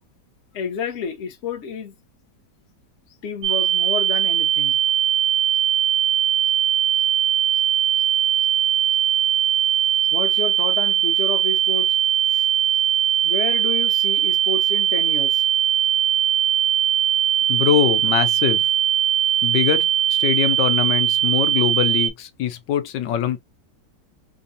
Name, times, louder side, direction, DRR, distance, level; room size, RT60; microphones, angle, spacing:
voice 1, 0.5-1.9 3.2-4.8 10.1-12.0 12.3-12.5 13.2-15.5, left 5 dB, 55° left, 0.9 m, -30 dB
sound 1, 3.4-22.1, right 11 dB, 70° right, 0.7 m, -20 dB
voice 2, 17.5-18.6 19.4-23.4, left 10 dB, 85° left, 1.4 m, -23 dB
3.5 x 2.6 x 2.6 m
omnidirectional pair, 1.9 m